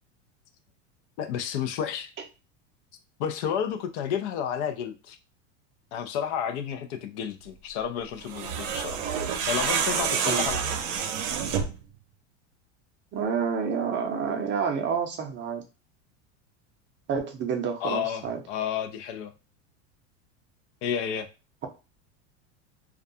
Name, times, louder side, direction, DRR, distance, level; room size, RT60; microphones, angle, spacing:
voice 1, 1.2-2.1 3.2-5.2 5.9-9.0 9.5-10.8 17.8-19.3 20.8-21.3, left 8 dB, 65° left, 0.5 m, -31 dB
sound 1, 8.2-11.8, right 7 dB, 80° right, 0.6 m, -28 dB
voice 2, 13.1-15.6 17.1-18.4, right 6 dB, 30° right, 0.5 m, -29 dB
2.3 x 2.3 x 2.6 m
supercardioid pair, 110°, 37 cm